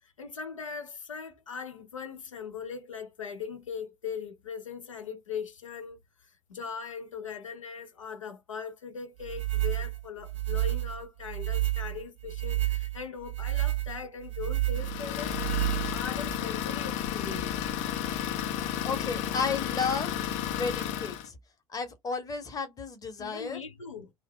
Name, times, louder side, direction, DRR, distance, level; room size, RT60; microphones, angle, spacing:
voice 1, 0.0-17.6 23.2-24.1, left 6 dB, 80° left, 0.7 m, -40 dB
sound 1, 9.2-16.4, right 17 dB, 70° right, 0.6 m, -30 dB
Idling, 14.8-21.3, left 10 dB, 45° left, 0.5 m, -32 dB
voice 2, 18.8-20.1 20.4-21.4 21.7-23.6, left 5 dB, 20° left, 0.9 m, -33 dB
2.4 x 2.0 x 3.5 m
figure-of-eight pair, 70°, 16 cm